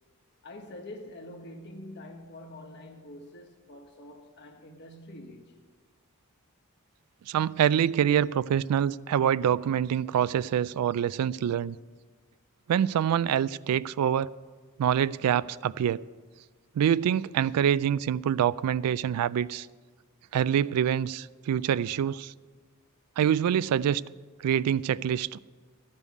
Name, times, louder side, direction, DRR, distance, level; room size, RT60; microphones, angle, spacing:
voice 1, 0.4-5.6, left 1 dB, 50° left, 1.2 m, -45 dB
voice 2, 7.3-11.8 12.7-14.3 14.8-16.0 16.8-19.7 20.3-22.3 23.2-24.0 24.4-25.4, right 9 dB, 85° right, 0.3 m, -25 dB
13.5 x 5.4 x 8.2 m
head